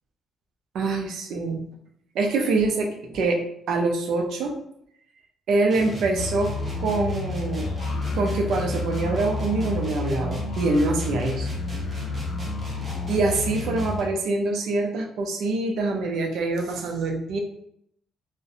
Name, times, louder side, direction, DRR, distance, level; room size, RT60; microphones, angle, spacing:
voice 1, 0.7-1.6 2.1-3.4 3.7-4.5 5.5-6.5 6.8-7.7 8.1-11.5 13.1-17.4, right 3 dB, 75° right, 2 dB, 0.5 m, -25 dB
sound 1, 5.7-14.2, right 1 dB, 30° right, 0.8 m, -34 dB
sound 2, 6.1-14.0, left 4 dB, 90° left, 0.4 m, -32 dB
2.4 x 2.1 x 2.7 m, 0.71 s
cardioid pair, 90°, 0 cm